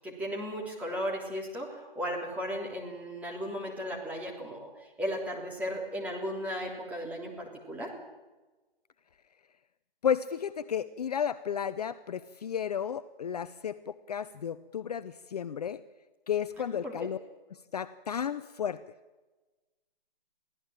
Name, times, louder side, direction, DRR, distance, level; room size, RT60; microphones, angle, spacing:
voice 1, 0.0-7.9 16.8-16.9, equal, 5° right, -2 dB, 3.3 m, -36 dB
voice 2, 10.0-15.8 16.3-17.2 17.7-18.8, left 8 dB, 40° left, 13 dB, 0.7 m, -33 dB
23.5 x 16.0 x 8.8 m, 1.2 s
hypercardioid pair, 155°, 29 cm